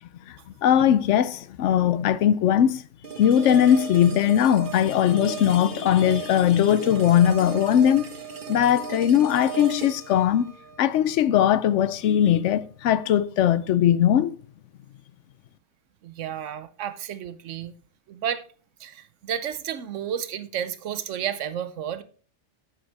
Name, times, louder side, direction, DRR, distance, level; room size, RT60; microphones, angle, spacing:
voice 1, 0.3-2.8 3.2-8.1 8.5-10.5 10.8-14.4, left 10 dB, 80° left, 0.9 m, -20 dB
sound 1, 3.0-12.1, right 7 dB, 45° right, 1.0 m, -37 dB
voice 2, 16.0-17.7 18.1-18.4 18.8-22.0, right 9 dB, 85° right, 1.1 m, -31 dB
8.8 x 8.0 x 3.4 m
omnidirectional pair, 1.2 m